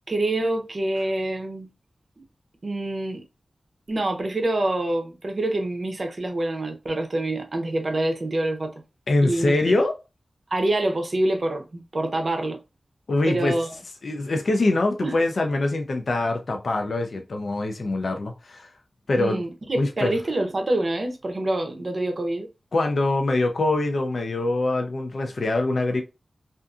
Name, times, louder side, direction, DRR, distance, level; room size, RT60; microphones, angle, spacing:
voice 1, 0.1-1.7 2.6-3.2 3.9-8.7 9.2-9.7 10.5-12.6 13.2-13.7 15.0-15.2 19.2-22.5, right 1 dB, 55° right, 0.6 m, -26 dB
voice 2, 9.1-10.0 13.1-13.6 14.0-18.7 19.1-19.4 19.8-20.2 22.7-26.0, left 2 dB, 75° left, 0.4 m, -24 dB
2.5 x 2.4 x 2.3 m
cardioid pair, 55°, 0 cm